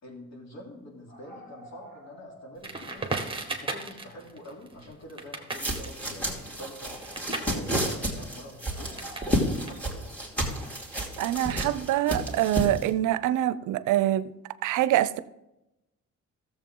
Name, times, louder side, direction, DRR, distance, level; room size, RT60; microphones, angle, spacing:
voice 1, 0.0-9.0 9.2-10.1, equal, 60° left, 3.3 m, -46 dB
sound 1, 1.1-2.8 3.1-3.2 5.7-6.4 6.8-7.1 8.7-10.1, right 1 dB, 35° left, 3.0 m, -50 dB
Crackle, 2.6-9.3 9.6-12.0, right 3 dB, 15° right, 1.6 m, -38 dB
sound 2, 5.5-12.9, equal, 5° left, 2.6 m, -31 dB
voice 2, 11.2-14.3 14.6-15.2, right 13 dB, 80° right, 0.6 m, -25 dB
14.0 x 7.4 x 3.8 m
cardioid pair, 90°, 30 cm